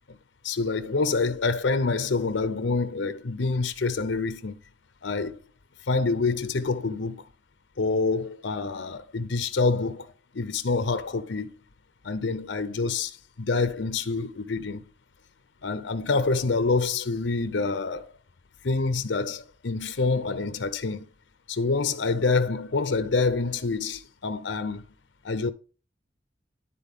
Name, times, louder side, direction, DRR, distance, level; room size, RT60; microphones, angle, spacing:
voice 1, 0.4-4.6 5.0-5.4 5.9-7.2 7.8-11.5 12.0-13.1 13.4-14.8 15.6-18.1 18.6-21.1 21.5-24.8 25.2-25.5, left 4 dB, 75° left, 0.7 m, -27 dB
12.0 x 4.1 x 3.6 m
head